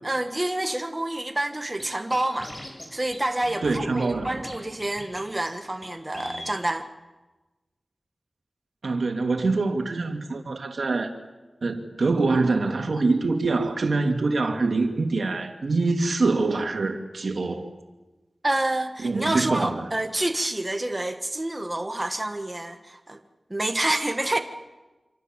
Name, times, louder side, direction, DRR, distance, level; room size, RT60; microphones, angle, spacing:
voice 1, 0.0-2.5 2.9-6.9 18.4-23.2 23.5-24.4, right 1 dB, 25° right, 1.6 m, -28 dB
Scratching (performance technique), 1.8-1.9 2.1-2.9 3.1-3.2 3.4-4.5 4.8-5.2 5.4-5.5 5.8-5.9 6.1-6.6, left 1 dB, 30° left, 7.7 m, -40 dB
voice 2, 3.6-4.4 8.8-11.1 11.6-17.7 19.0-19.9, right 3 dB, 80° right, 2.5 m, -24 dB
27.0 x 26.5 x 7.5 m
wide cardioid pair, 85°, 0 cm